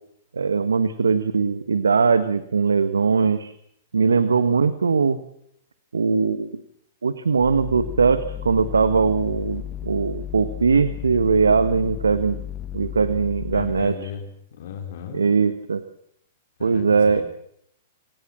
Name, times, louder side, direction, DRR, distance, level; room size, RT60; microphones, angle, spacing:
voice 1, 0.3-3.5 3.9-5.2 5.9-6.6 7.0-12.4 12.7-13.9 15.1-15.8 16.6-17.2, right 5 dB, 85° right, 13 dB, 1.3 m, -20 dB
sound 1, 7.4-13.9, left 11 dB, 30° left, 1.1 m, -34 dB
voice 2, 13.5-14.2 14.5-15.2 16.6-17.2, left 8 dB, 65° left, 4 dB, 3.7 m, -35 dB
27.0 x 18.5 x 7.5 m, 0.72 s
hypercardioid pair, 110°, 0 cm